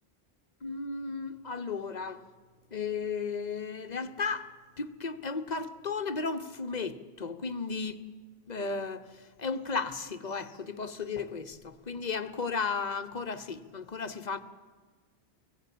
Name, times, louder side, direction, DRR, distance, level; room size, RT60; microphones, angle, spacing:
voice 1, 0.6-2.3 2.7-4.5 4.8-8.0 8.5-14.4, left 4 dB, 40° left, 1.0 m, -34 dB
24.0 x 16.0 x 8.5 m
omnidirectional pair, 1.1 m